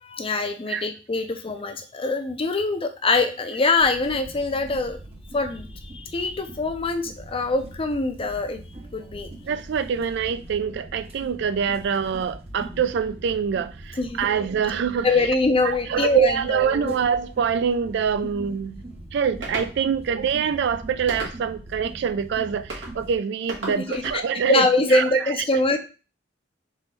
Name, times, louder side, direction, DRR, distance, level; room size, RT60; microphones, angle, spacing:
voice 1, 0.0-5.0 5.3-8.6 8.9-9.3 14.0-14.2 15.0-16.9 23.7-24.2 24.5-25.8, left 3 dB, 30° left, 0.5 m, -24 dB
sound 1, 3.8-23.1, right 1 dB, 35° right, 0.7 m, -42 dB
voice 2, 9.5-15.1 15.6-18.8 19.1-24.7 24.9-25.0, right 7 dB, 65° right, 0.3 m, -25 dB
sound 2, 19.4-19.7 21.1-21.6 22.7-22.9 23.5-24.2, right 2 dB, 90° right, 1.4 m, -34 dB
3.9 x 3.7 x 3.2 m
head